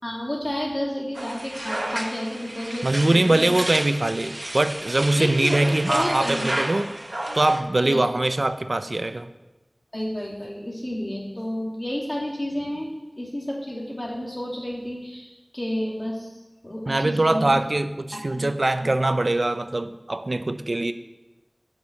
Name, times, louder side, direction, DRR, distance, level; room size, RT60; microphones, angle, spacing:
voice 1, 0.0-3.6 5.2-6.6 7.9-8.0 9.9-12.9 13.2-16.3 16.6-17.6 18.1-18.9, left 1 dB, 40° left, -3 dB, 3.0 m, -31 dB
sound 1, 1.1-7.6, right 1 dB, 50° right, 1.2 m, -32 dB
voice 2, 2.8-6.9 7.3-9.3 16.9-20.9, right 2 dB, 80° right, 10 dB, 0.6 m, -22 dB
10.5 x 6.2 x 6.5 m, 1.1 s
wide cardioid pair, 40°, 0 cm